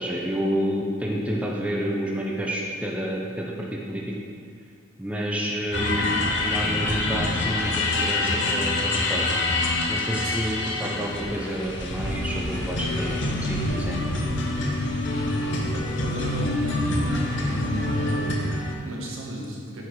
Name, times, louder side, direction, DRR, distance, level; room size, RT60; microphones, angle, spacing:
voice 1, 0.0-4.1 5.0-6.1 6.4-9.3 9.9-14.0, equal, 5° right, -3 dB, 0.6 m, -29 dB
sound 1, 5.7-18.7, left 2 dB, 60° left, 0.9 m, -26 dB
voice 2, 15.7-16.9 17.4-19.8, right 1 dB, 90° right, -3 dB, 1.5 m, -34 dB
8.5 x 4.4 x 4.8 m, 2.2 s
head